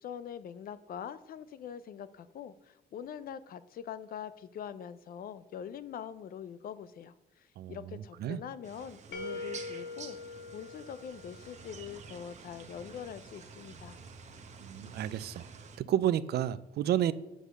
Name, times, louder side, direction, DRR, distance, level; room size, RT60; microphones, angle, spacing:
voice 1, 0.0-10.2 10.5-14.0, left 8 dB, 60° left, 15 dB, 0.5 m, -43 dB
sound 1, 8.6-15.8, right 5 dB, 45° right, 1.0 m, -50 dB
sound 2, 9.1-12.0, left 3 dB, 85° left, 0.9 m, -43 dB
voice 2, 14.6-15.5 15.8-17.1, right 11 dB, 75° right, 16 dB, 0.4 m, -30 dB
7.6 x 4.9 x 6.5 m, 1.0 s
cardioid pair, 145°, 17 cm